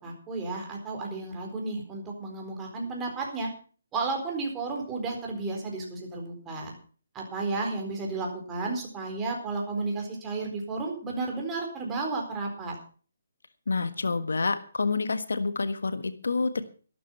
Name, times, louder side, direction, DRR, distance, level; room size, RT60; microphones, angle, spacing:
voice 1, 0.0-3.5 3.9-6.7 7.1-12.8, right 3 dB, 15° right, 0 dB, 4.3 m, -33 dB
voice 2, 13.7-16.6, left 4 dB, 85° left, 11 dB, 1.4 m, -28 dB
12.5 x 12.0 x 5.7 m, 0.40 s
hypercardioid pair, 160°, 0 cm